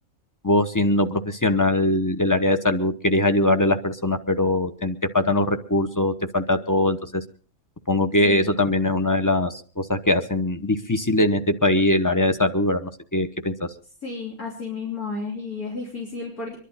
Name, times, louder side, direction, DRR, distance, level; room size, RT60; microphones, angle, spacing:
voice 1, 0.4-7.2 7.9-13.5, left 1 dB, 15° left, 9 dB, 0.7 m, -21 dB
voice 2, 14.0-16.6, left 4 dB, 65° left, -2 dB, 3.8 m, -32 dB
25.0 x 11.5 x 4.1 m, 0.41 s
omnidirectional pair, 1.7 m